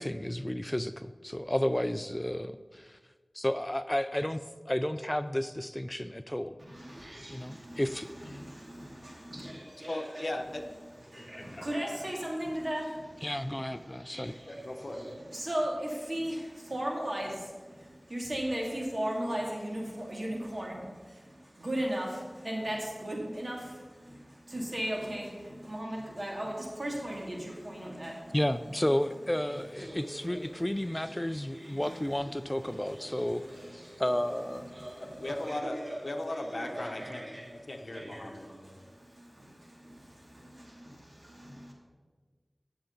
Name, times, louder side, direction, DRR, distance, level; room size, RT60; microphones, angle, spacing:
voice 1, 0.0-3.0 3.3-6.6 7.3-8.4 13.2-14.3 28.3-34.7 35.2-35.4, left 1 dB, 20° left, 11 dB, 0.3 m, -32 dB
voice 2, 6.6-10.4 11.1-28.4 29.4-34.2 34.6-37.5 37.8-41.7, right 1 dB, 60° right, -1 dB, 2.4 m, -38 dB
voice 3, 9.9-10.7 11.2-12.1 14.5-15.1 35.0-35.8 36.0-37.3 37.5-38.5, left 1 dB, 65° left, 5 dB, 0.9 m, -38 dB
16.0 x 6.8 x 3.9 m, 1.4 s
wide cardioid pair, 50°, 0 cm